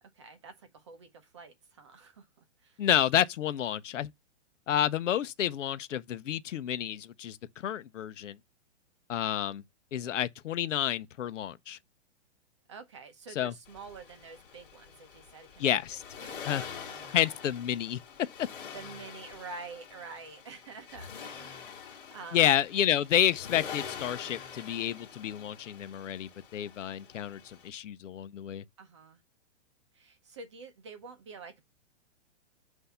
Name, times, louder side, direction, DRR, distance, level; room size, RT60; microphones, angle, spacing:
voice 1, 0.0-2.3 2.6-2.8 12.7-15.7 16.1-17.4 18.7-22.4 28.8-29.2 29.9-31.6, right 4 dB, 25° right, 0.6 m, -48 dB
voice 2, 2.8-4.1 4.7-8.4 9.1-9.6 9.9-11.8 13.4-13.5 15.6-16.0 16.4-16.6 17.1-18.0 18.4-18.5 22.3-28.6, left 10 dB, 85° left, 0.7 m, -29 dB
Accelerating revving vroom, 13.6-27.7, left 7 dB, 45° left, 2.1 m, -45 dB
8.1 x 2.7 x 5.4 m
hypercardioid pair, 175°, 36 cm